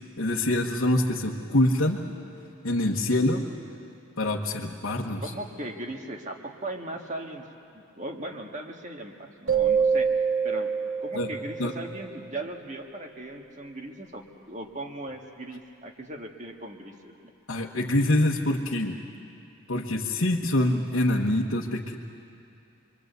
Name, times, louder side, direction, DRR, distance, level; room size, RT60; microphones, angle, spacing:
voice 1, 0.2-2.1 2.6-3.5 4.2-5.2 11.1-11.3 11.6-11.7 17.5-19.0 19.7-22.0, left 1 dB, 75° left, -2 dB, 1.3 m, -25 dB
voice 2, 5.2-7.5 7.7-10.7 11.0-17.3, right 1 dB, 35° right, 2 dB, 1.9 m, -38 dB
sound 1, 9.5-12.1, right 6 dB, 75° right, 2.4 m, -26 dB
27.0 x 23.0 x 8.1 m, 2.6 s
head